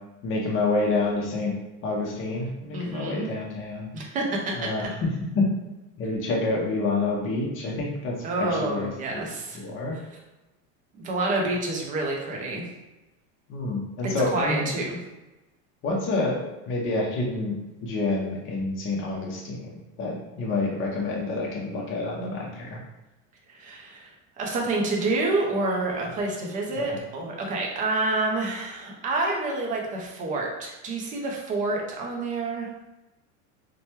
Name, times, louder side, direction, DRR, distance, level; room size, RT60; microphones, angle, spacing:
voice 1, 0.2-1.5 1.8-3.9 4.6-5.5 6.0-9.3 9.5-10.0 13.5-14.7 15.8-16.4 16.7-17.5 17.8-22.8 26.7-27.0, left 3 dB, 30° left, -2 dB, 0.7 m, -28 dB
voice 2, 2.7-3.3 3.9-4.7 8.2-9.6 10.9-12.6 14.0-15.0 23.5-32.7, right 2 dB, 20° right, -1 dB, 0.4 m, -28 dB
3.0 x 2.2 x 2.9 m, 1.0 s
supercardioid pair, 145°, 40 cm